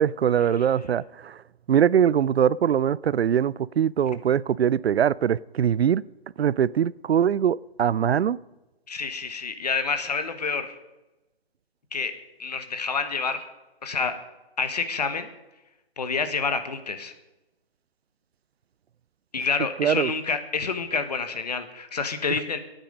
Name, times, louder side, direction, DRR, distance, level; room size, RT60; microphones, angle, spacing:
voice 1, 0.0-1.4 1.7-6.0 6.4-8.4 19.8-20.1, right 9 dB, 80° right, 0.5 m, -22 dB
voice 2, 8.9-10.7 11.9-12.1 12.4-13.5 13.8-14.2 14.6-15.3 16.0-17.1 19.3-22.6, left 5 dB, 40° left, 1.2 m, -28 dB
17.0 x 9.1 x 5.1 m
hypercardioid pair, 170°, 31 cm